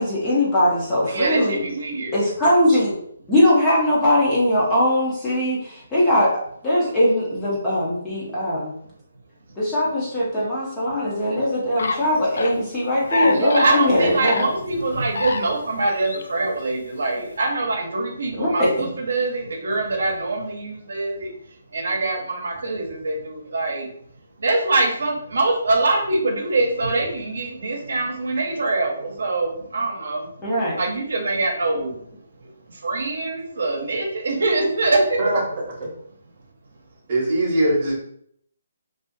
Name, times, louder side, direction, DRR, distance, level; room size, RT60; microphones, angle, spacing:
voice 1, 0.0-1.6 2.1-2.9 3.3-6.3 6.6-8.7 9.6-14.5 18.3-18.9 27.7-27.8 30.4-30.8, left 1 dB, 10° left, -7 dB, 0.5 m, -20 dB
voice 2, 1.1-2.1 13.3-21.3 21.7-23.9 24.4-30.3 30.8-32.0 32.8-35.2, right 2 dB, 75° right, 1 dB, 0.7 m, -24 dB
sound 1, 11.8-12.6 13.0-15.7 16.0-16.5, left 3 dB, 70° left, 0.3 m, -27 dB
voice 3, 37.1-37.9, right 1 dB, 25° right, -4 dB, 0.8 m, -20 dB
2.4 x 2.3 x 2.6 m, 0.67 s
hypercardioid pair, 175°, 0 cm